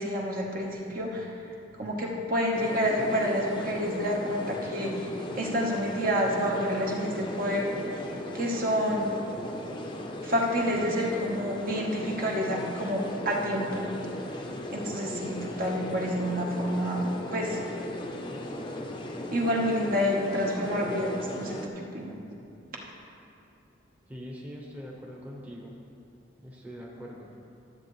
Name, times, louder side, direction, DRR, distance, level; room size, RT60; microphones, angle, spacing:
voice 1, 0.0-1.3 1.8-5.1 5.4-7.7 8.3-9.1 10.2-13.9 14.7-17.6 19.3-22.2, equal, 50° right, -1 dB, 1.2 m, -28 dB
sound 1, 2.5-21.7, left 1 dB, 25° left, 0.6 m, -37 dB
voice 2, 24.1-25.8 26.4-27.3, equal, 10° right, -3 dB, 0.9 m, -42 dB
13.0 x 7.7 x 3.2 m, 2.6 s
head